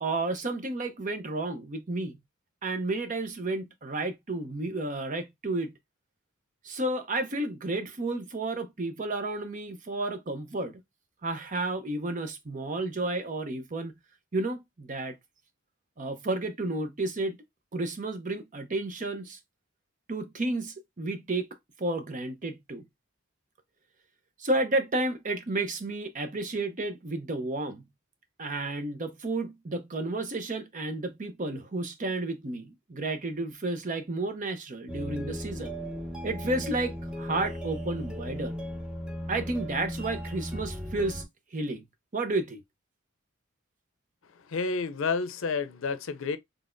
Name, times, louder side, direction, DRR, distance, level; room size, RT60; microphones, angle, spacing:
voice 1, 0.0-2.2 2.6-5.7 6.6-10.8 11.2-13.9 14.3-15.2 16.0-17.4 17.7-19.4 20.1-21.5 21.8-22.8 24.4-27.9 28.4-35.7 36.2-38.5 39.3-41.2 41.5-41.8 42.1-42.6, right 2 dB, 40° right, 0.7 m, -31 dB
sound 1, 34.9-41.2, equal, 5° right, 0.9 m, -36 dB
voice 2, 44.5-46.4, left 4 dB, 70° left, 0.5 m, -30 dB
4.0 x 3.4 x 2.5 m
head